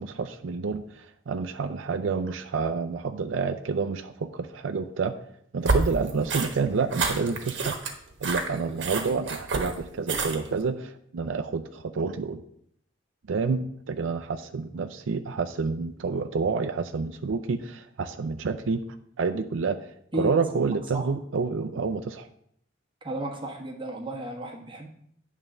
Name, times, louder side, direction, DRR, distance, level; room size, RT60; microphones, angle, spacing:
voice 1, 0.0-5.1 5.5-7.7 8.2-12.4 13.3-18.8 19.2-19.8 20.1-22.3, right 4 dB, 90° right, 7 dB, 0.5 m, -28 dB
sound 1, 5.7-10.6, right 3 dB, 70° right, 1.2 m, -29 dB
voice 2, 23.0-24.9, right 1 dB, 25° right, -1 dB, 1.4 m, -33 dB
9.0 x 3.7 x 6.5 m, 0.69 s
head